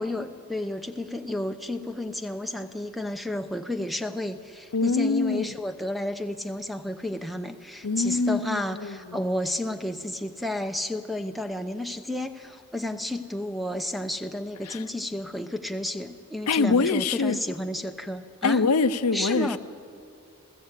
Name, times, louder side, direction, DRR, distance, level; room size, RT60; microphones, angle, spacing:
voice 1, 0.0-18.6 19.1-19.6, left 1 dB, ahead, 8 dB, 0.8 m, -31 dB
voice 2, 4.7-5.6 7.8-9.2 14.6-14.8 16.5-17.4 18.4-19.6, left 4 dB, 85° left, 12 dB, 0.7 m, -24 dB
30.0 x 15.5 x 8.3 m, 2.5 s
head